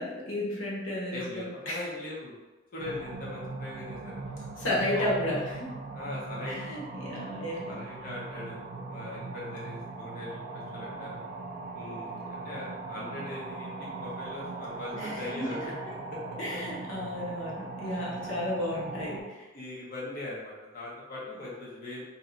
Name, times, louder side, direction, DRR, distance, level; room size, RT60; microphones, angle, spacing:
voice 1, 0.0-1.9 4.6-5.4 6.5-7.8 14.9-15.4 16.4-19.5, left 1 dB, 90° left, -5 dB, 0.9 m, -33 dB
voice 2, 1.1-2.4 2.7-4.1 4.9-5.4 5.9-6.7 7.7-11.2 11.7-15.6 15.9-16.2 16.5-16.6 18.0-18.3 19.5-22.0, left 2 dB, 50° left, -6 dB, 0.8 m, -40 dB
sound 1, 2.8-19.2, right 3 dB, 55° right, 0.5 m, -40 dB
2.7 x 2.2 x 3.8 m, 1.1 s
head